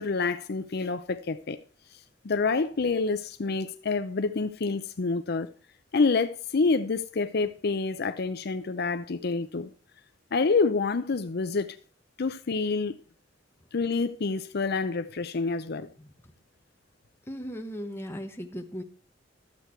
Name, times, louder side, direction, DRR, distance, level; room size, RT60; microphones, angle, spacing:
voice 1, 0.0-1.6 2.2-5.5 5.9-9.7 10.3-11.8 12.2-13.0 13.7-15.9, left 4 dB, 60° left, 0.6 m, -27 dB
voice 2, 17.3-18.8, equal, 15° left, 1.2 m, -37 dB
12.5 x 8.2 x 4.4 m
head